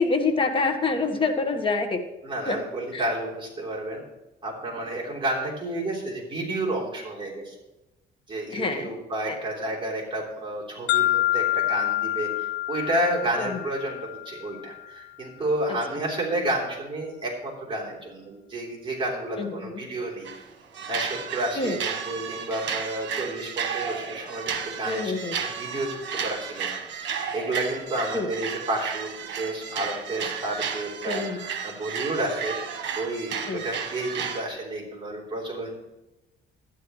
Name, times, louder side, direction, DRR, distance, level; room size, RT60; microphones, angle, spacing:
voice 1, 0.0-2.0 2.5-2.6 2.9-3.1 8.5-8.9 9.3-9.4 13.4-13.6 15.7-15.8 19.4-19.8 21.6-21.8 24.8-25.3 28.1-28.3 31.0-31.4 33.5-33.7, left 3 dB, 30° left, 5 dB, 1.3 m, -26 dB
voice 2, 2.2-4.0 4.4-7.5 8.3-20.3 20.9-29.1 29.4-35.7, right 1 dB, 25° right, -3 dB, 3.3 m, -31 dB
sound 1, 10.9-14.9, left 15 dB, 80° left, 0.6 m, -27 dB
sound 2, 20.2-20.5 20.7-34.5, right 7 dB, 70° right, 1.3 m, -33 dB
12.5 x 10.0 x 3.1 m, 1.0 s
cardioid pair, 125°, 19 cm